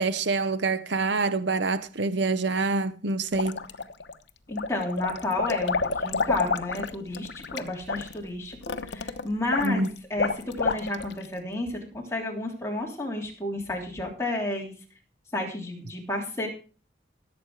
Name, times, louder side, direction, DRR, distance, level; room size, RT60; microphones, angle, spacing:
voice 1, 0.0-3.6 9.6-9.9, right 3 dB, 70° right, 0.8 m, -26 dB
sound 1, 3.3-4.1 4.5-11.2, left 4 dB, 70° left, 1.0 m, -29 dB
voice 2, 4.5-14.7 15.3-16.5, left 1 dB, 15° left, 3.2 m, -31 dB
16.5 x 8.1 x 4.8 m
head